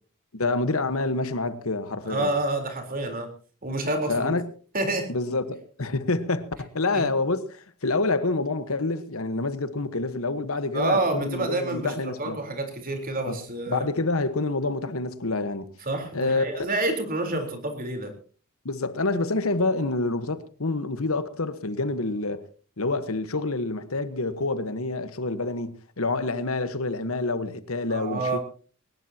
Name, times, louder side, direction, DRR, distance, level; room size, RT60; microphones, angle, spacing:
voice 1, 0.3-2.3 4.1-4.4 5.1-12.4 13.2-15.7 16.1-17.0 17.3-17.4 18.6-22.4 22.8-28.4, left 3 dB, 70° left, 1.3 m, -27 dB
voice 2, 2.0-3.3 3.6-4.3 4.7-5.1 6.9-7.0 10.7-13.9 15.8-18.1 27.9-28.4, right 2 dB, 40° right, 3.8 m, -28 dB
21.0 x 19.5 x 2.9 m
head